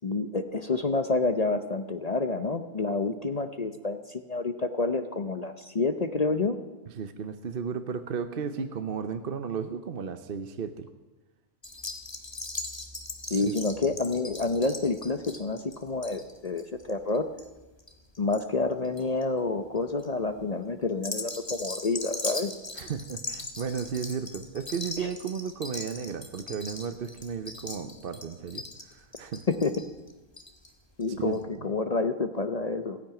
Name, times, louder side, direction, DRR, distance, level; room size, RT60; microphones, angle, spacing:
voice 1, 0.0-6.6 13.3-17.3 18.2-22.5 25.0-25.1 29.5-29.7 31.0-33.0, left 3 dB, 40° left, 8 dB, 0.6 m, -28 dB
voice 2, 7.0-10.9 13.3-13.5 22.8-29.4 31.2-31.4, right 6 dB, 45° right, 9 dB, 0.8 m, -34 dB
sound 1, 11.6-18.4 18.7-19.2 19.8-20.1 20.9-30.7 31.0-31.1 31.3-31.4, left 2 dB, 20° left, 1.4 m, -39 dB
15.5 x 10.5 x 9.0 m, 1.1 s
omnidirectional pair, 1.6 m